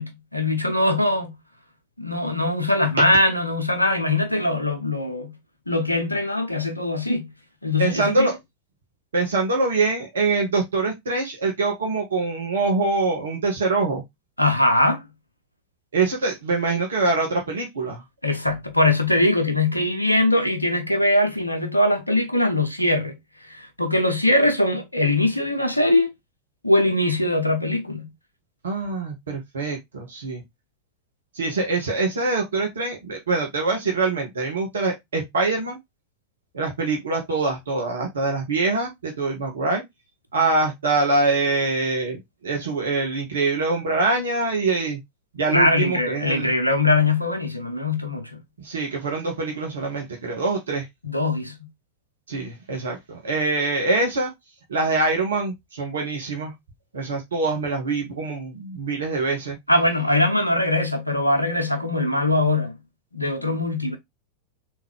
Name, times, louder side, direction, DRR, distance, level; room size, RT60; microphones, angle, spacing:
voice 1, 0.0-1.3 2.0-5.3 5.7-7.3 7.6-8.3 14.4-15.0 18.2-23.1 23.5-26.1 26.6-28.1 45.5-48.3 51.0-51.6 59.7-62.8 63.1-64.0, left 2 dB, 85° left, 0.7 m, -21 dB
voice 2, 7.8-8.4 9.1-14.0 15.9-18.0 28.6-30.4 31.3-35.8 36.5-39.8 40.3-45.0 45.3-46.5 48.6-50.9 52.3-54.3 54.7-56.5 56.9-59.6, right 3 dB, 65° right, 1.1 m, -24 dB
3.5 x 3.1 x 3.5 m
figure-of-eight pair, 90°, 0 cm